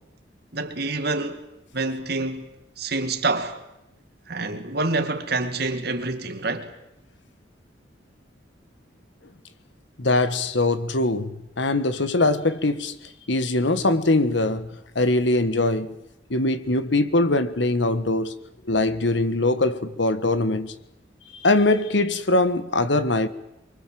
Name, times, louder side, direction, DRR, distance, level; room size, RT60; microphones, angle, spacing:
voice 1, 0.5-1.5 1.7-2.5 2.8-3.6 4.3-6.7, right 3 dB, 55° right, 2.4 m, -27 dB
voice 2, 10.0-12.9 13.3-14.7 14.9-15.9 16.3-18.3 18.6-20.7 21.4-23.3, left 2 dB, 75° left, 1.6 m, -22 dB
24.5 x 24.0 x 7.8 m
head